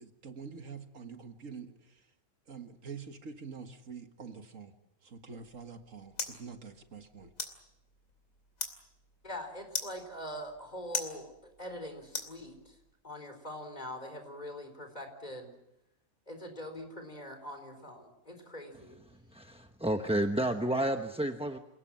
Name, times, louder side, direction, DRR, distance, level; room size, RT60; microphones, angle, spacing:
voice 1, 0.0-2.1 2.5-4.7 5.0-7.3, right 5 dB, 70° right, 6 dB, 2.0 m, -46 dB
sound 1, 5.4-12.9, left 3 dB, 85° left, 3.3 m, -43 dB
voice 2, 9.2-12.7 13.0-15.6 16.3-19.0, equal, 30° left, 6 dB, 4.3 m, -43 dB
voice 3, 19.3-21.6, right 1 dB, 5° right, 5 dB, 0.8 m, -30 dB
28.0 x 18.5 x 7.6 m, 0.85 s
omnidirectional pair, 1.4 m